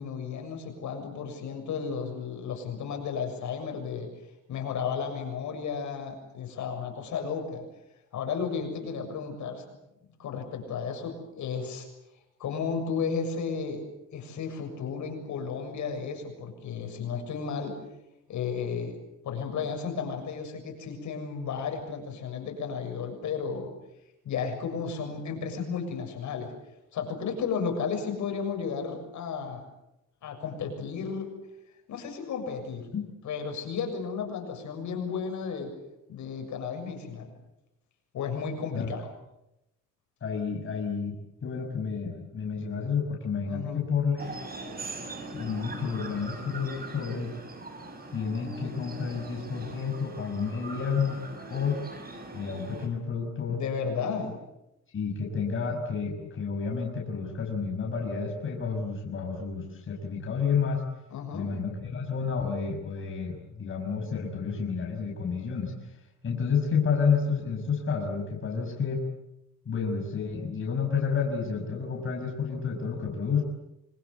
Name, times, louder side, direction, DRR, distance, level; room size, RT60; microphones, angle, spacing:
voice 1, 0.0-4.1 4.5-7.6 8.1-9.6 10.2-11.9 12.4-13.8 14.1-17.8 18.3-19.0 19.2-23.7 24.3-26.5 26.9-29.6 30.2-31.3 31.9-32.9 33.2-35.8 36.1-37.3 38.1-39.1 43.5-43.8 53.5-54.4 61.1-61.5, left 6 dB, 65° left, 4 dB, 7.0 m, -33 dB
voice 2, 40.2-41.2 41.4-44.3 45.3-47.3 48.1-51.2 51.5-51.8 52.3-53.6 54.9-60.8 61.3-65.9 66.2-69.0 69.7-73.4, left 5 dB, 40° left, 1 dB, 5.9 m, -30 dB
sound 1, 44.2-52.9, right 2 dB, 30° right, 6.1 m, -41 dB
26.0 x 25.0 x 8.2 m, 0.87 s
cardioid pair, 140°, 31 cm